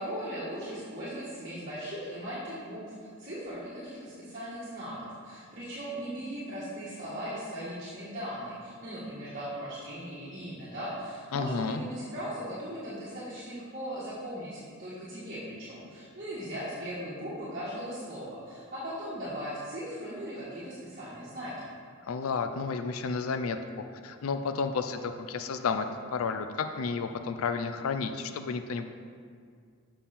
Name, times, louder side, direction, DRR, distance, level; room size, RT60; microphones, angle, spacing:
voice 1, 0.0-21.7, equal, 45° right, -11 dB, 1.5 m, -38 dB
voice 2, 11.3-11.8 22.1-25.9 26.1-28.9, left 5 dB, 90° left, 8 dB, 0.4 m, -32 dB
7.2 x 5.5 x 4.3 m, 2.1 s
head